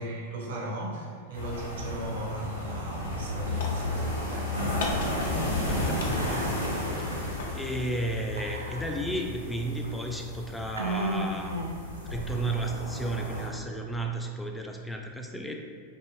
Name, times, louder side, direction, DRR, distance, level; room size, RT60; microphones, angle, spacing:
voice 1, 0.0-4.6, right 1 dB, 55° right, -1 dB, 0.7 m, -37 dB
sound 1, 1.3-13.5, left 1 dB, 80° left, 1.4 m, -33 dB
sound 2, 2.4-2.7 3.0-4.3 4.8-5.7 6.0-7.6, left 3 dB, 55° left, 0.5 m, -38 dB
voice 2, 5.7-6.6 7.0-7.1 7.5-15.6, right 2 dB, 5° left, 1 dB, 0.4 m, -33 dB
Whispering, 6.1-6.8 7.1-7.2 8.4-9.2 9.8-9.9 10.7-12.0, right 2 dB, 80° right, 0.3 m, -34 dB
4.8 x 2.5 x 3.0 m, 2.1 s
figure-of-eight pair, 90°, 0 cm